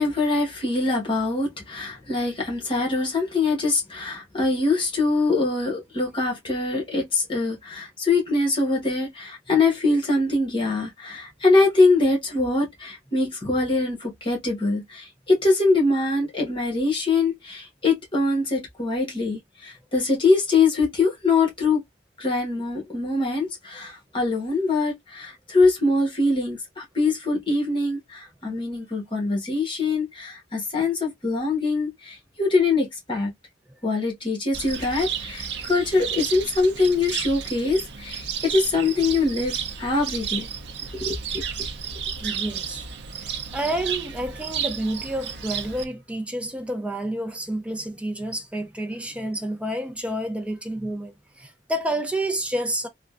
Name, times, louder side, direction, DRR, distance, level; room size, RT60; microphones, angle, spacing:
voice 1, 0.0-21.8 22.2-33.3 33.8-40.5 41.0-41.4, left 3 dB, 30° left, 1.2 m, -23 dB
Cricket, 34.5-45.8, right 7 dB, 70° right, 0.5 m, -32 dB
voice 2, 42.2-42.8 43.2-52.9, right 1 dB, 5° right, 0.3 m, -29 dB
3.5 x 2.1 x 2.4 m
head